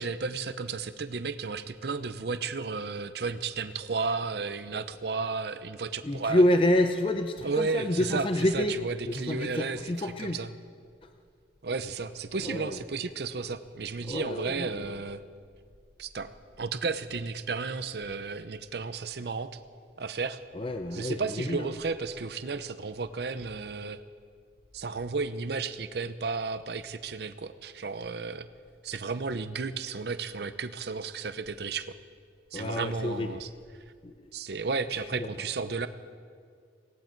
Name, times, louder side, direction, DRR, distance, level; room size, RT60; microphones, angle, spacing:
voice 1, 0.0-6.4 7.4-10.5 11.6-15.2 16.0-16.3 16.6-19.5 20.0-20.4 20.9-24.0 24.7-28.5 28.8-32.0 32.5-33.5 34.3-35.9, right 4 dB, 65° right, 12 dB, 0.6 m, -33 dB
voice 2, 6.0-8.8 9.1-10.4 11.0-11.1 12.4-12.8 14.1-14.7 20.5-21.7 32.5-33.3 34.0-34.1 35.2-35.3, left 1 dB, 30° left, 7 dB, 0.6 m, -28 dB
18.5 x 17.0 x 4.5 m, 2.1 s
head